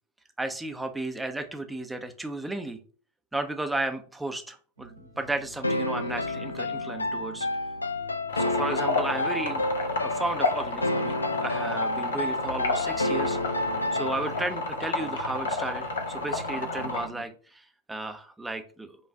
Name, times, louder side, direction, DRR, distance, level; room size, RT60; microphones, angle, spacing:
voice 1, 0.4-2.8 3.3-7.5 8.3-9.6 10.0-13.4 13.9-18.9, right 2 dB, 5° right, 6 dB, 0.6 m, -34 dB
sound 1, 4.8-17.2, right 2 dB, 80° right, 0.8 m, -44 dB
sound 2, 5.6-14.5, left 2 dB, 80° left, 0.3 m, -30 dB
sound 3, 8.3-17.1, left 3 dB, 65° left, 0.8 m, -31 dB
5.3 x 2.4 x 3.8 m, 0.41 s
figure-of-eight pair, 90°, 0 cm